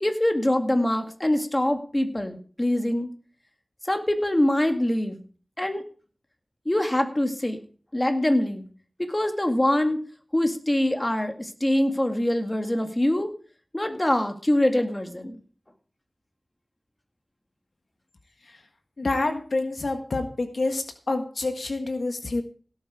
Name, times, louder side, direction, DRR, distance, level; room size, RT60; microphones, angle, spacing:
voice 1, 0.0-3.1 3.9-5.2 5.6-5.8 6.7-7.6 7.9-8.7 9.0-10.0 10.3-13.3 13.7-15.4, left 1 dB, 25° left, 6 dB, 2.0 m, -24 dB
voice 2, 19.0-22.4, left 2 dB, 75° left, 6 dB, 1.6 m, -27 dB
17.0 x 7.9 x 4.9 m, 0.41 s
wide cardioid pair, 55°, 0 cm